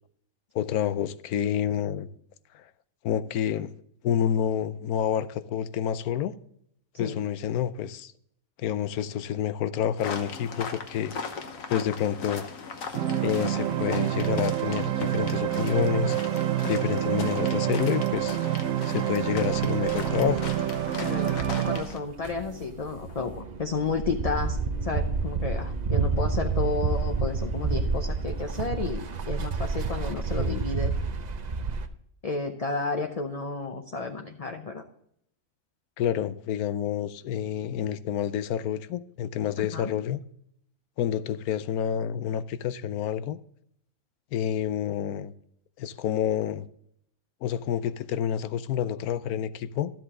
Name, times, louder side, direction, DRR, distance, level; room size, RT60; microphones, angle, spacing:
voice 1, 0.5-2.1 2.5-2.6 3.0-3.7 4.0-6.3 7.0-8.1 8.6-11.1 11.7-12.5 13.2-16.2 16.7-18.4 18.9-20.4 36.0-40.2 41.0-43.4 44.3-45.3 45.8-46.7 47.4-49.9, left 9 dB, 85° left, 1.1 m, -28 dB
sound 1, 10.0-22.0, left 5 dB, 65° left, 1.4 m, -39 dB
sound 2, 12.9-21.8, right 12 dB, 75° right, 1.1 m, -27 dB
sound 3, 14.8-14.9 18.1-18.3 19.5-31.9, right 4 dB, 45° right, 0.6 m, -30 dB
voice 2, 16.6-17.0 21.0-30.9 32.2-34.8 39.7-39.9, left 4 dB, 40° left, 0.6 m, -32 dB
13.0 x 7.7 x 3.7 m
omnidirectional pair, 1.5 m